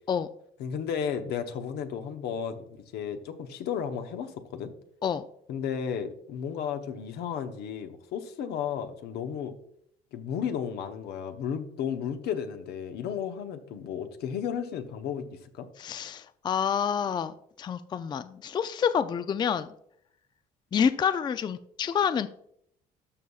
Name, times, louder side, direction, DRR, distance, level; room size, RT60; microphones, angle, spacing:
voice 1, 0.6-4.7 5.5-9.5 10.1-15.7, left 8 dB, 80° left, 7 dB, 0.9 m, -33 dB
voice 2, 15.8-19.7 20.7-22.3, left 7 dB, 25° left, 13 dB, 0.3 m, -28 dB
12.5 x 5.5 x 2.4 m, 0.69 s
cardioid pair, 110°, 17 cm